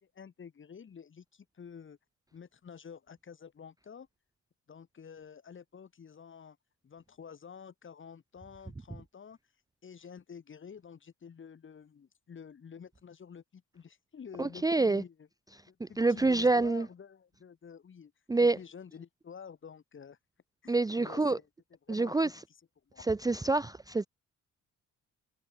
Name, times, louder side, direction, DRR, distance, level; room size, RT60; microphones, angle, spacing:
voice 1, 0.0-2.0 2.3-4.1 4.7-6.6 6.8-9.4 9.8-15.3 15.6-18.1 18.5-20.2 20.6-20.7 21.0-21.5 21.8-22.6 22.9-23.1, left 7 dB, 40° left, 2.2 m, -49 dB
voice 2, 14.4-15.0 15.8-16.9 18.3-18.6 20.7-21.4 21.9-22.3 23.1-24.1, right 3 dB, 10° right, 0.6 m, -27 dB
cardioid pair, 90°, 30 cm